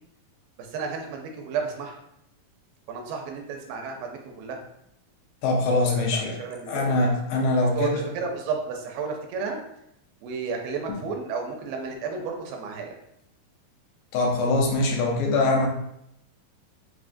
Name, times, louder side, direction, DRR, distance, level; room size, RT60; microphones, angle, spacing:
voice 1, 0.6-2.0 2.9-4.6 5.8-7.0 7.8-9.6 10.2-13.0, right 5 dB, 80° right, 2 dB, 2.3 m, -32 dB
voice 2, 5.4-6.4 6.7-8.0 14.1-15.7, left 2 dB, 80° left, 0 dB, 2.2 m, -23 dB
5.8 x 2.4 x 2.5 m, 0.77 s
omnidirectional pair, 4.1 m